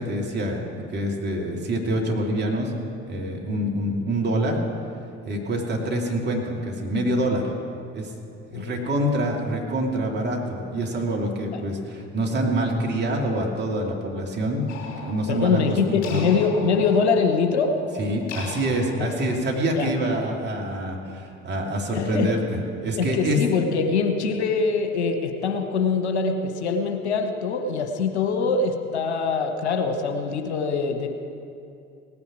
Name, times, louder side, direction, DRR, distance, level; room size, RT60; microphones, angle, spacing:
voice 1, 0.0-2.7 3.1-4.6 5.2-7.5 7.9-8.1 8.5-14.6 15.0-16.4 18.0-23.4, right 1 dB, 30° right, 0 dB, 2.6 m, -26 dB
sound 1, 14.7-19.9, left 5 dB, 45° left, 3.2 m, -40 dB
voice 2, 15.3-17.8 19.0-19.1 19.8-19.9 21.9-22.4 23.0-31.1, left 5 dB, 75° left, 5 dB, 1.1 m, -23 dB
18.0 x 9.6 x 6.1 m, 2.6 s
figure-of-eight pair, 60°, 34 cm